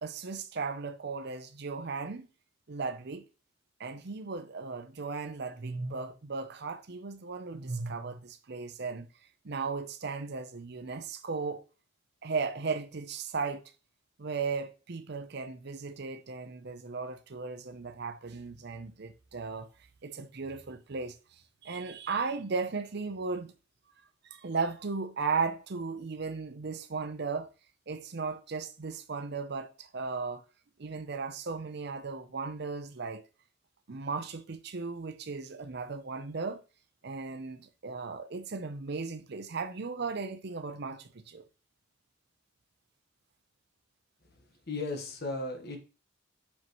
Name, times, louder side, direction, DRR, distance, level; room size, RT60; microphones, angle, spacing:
voice 1, 0.0-2.3 2.7-3.2 3.8-9.1 9.4-11.6 12.2-13.6 14.2-19.7 20.0-21.2 21.6-23.5 24.3-27.5 27.9-30.4 30.8-33.2 33.9-36.6 37.0-41.4, right 4 dB, 55° right, 0.7 m, -36 dB
voice 2, 44.2-45.8, left 2 dB, 55° left, 1.3 m, -36 dB
5.6 x 5.4 x 3.1 m
head